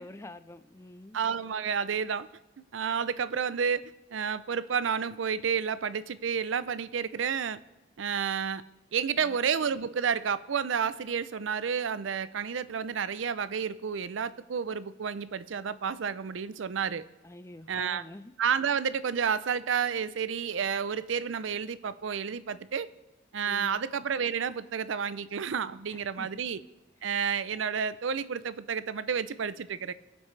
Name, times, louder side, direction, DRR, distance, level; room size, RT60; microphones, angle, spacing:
voice 1, 0.0-1.2 9.2-9.4 17.2-18.3 23.4-23.8 25.9-26.4, left 1 dB, 15° left, 12 dB, 0.4 m, -47 dB
voice 2, 1.1-2.3 2.7-7.6 8.0-8.6 8.9-17.1 17.7-18.0 18.4-22.9 23.3-26.6 27.0-29.9, right 7 dB, 80° right, 16 dB, 0.5 m, -30 dB
21.0 x 8.6 x 3.3 m, 1.1 s
head